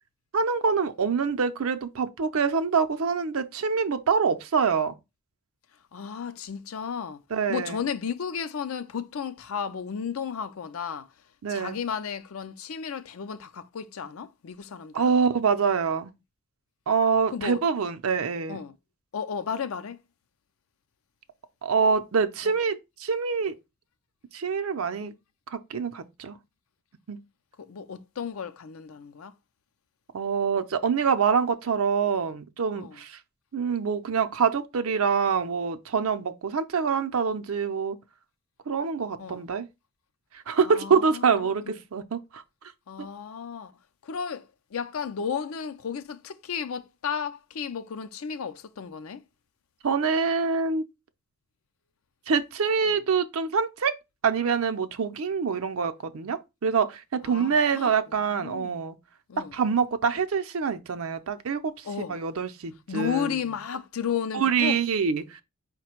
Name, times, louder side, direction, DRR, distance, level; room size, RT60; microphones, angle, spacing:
voice 1, 0.3-4.9 7.3-7.8 11.4-11.8 14.9-16.1 16.9-18.6 21.6-23.5 24.3-25.1 25.5-26.4 27.1-27.2 30.1-33.2 33.5-38.0 38.7-39.7 40.3-42.4 43.0-43.1 49.8-50.8 52.3-54.0 54.2-59.0 59.5-63.4 64.3-65.4, right 5 dB, 90° right, 0.6 m, -25 dB
voice 2, 5.9-7.2 7.5-11.1 11.5-14.9 17.3-17.6 18.5-18.7 19.1-20.0 22.4-22.5 27.6-29.3 32.7-33.0 39.2-39.4 40.6-41.7 42.9-43.7 44.0-49.2 52.9-53.0 57.2-58.0 58.3-58.8 59.3-59.5 61.8-62.2 62.9-64.8, left 7 dB, 80° left, 0.5 m, -33 dB
4.9 x 2.2 x 4.3 m
head